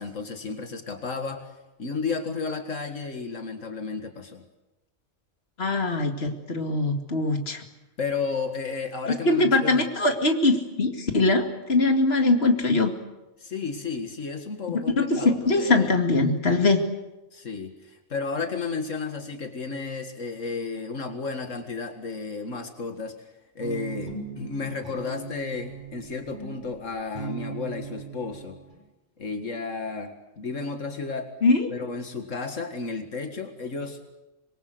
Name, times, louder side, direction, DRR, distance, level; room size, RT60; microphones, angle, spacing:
voice 1, 0.0-1.5 1.8-4.4 8.0-9.9 13.4-15.9 17.3-23.3 23.6-28.6 29.2-31.3 31.7-34.0, left 4 dB, 85° left, 6 dB, 2.2 m, -33 dB
voice 2, 5.6-7.6 9.1-12.9 14.7-16.8 31.4-31.7, left 2 dB, 55° left, 4 dB, 2.5 m, -22 dB
Guitar, 23.6-28.8, right 5 dB, 40° right, 5.8 m, -39 dB
26.0 x 22.5 x 7.9 m, 1.0 s
omnidirectional pair, 1.3 m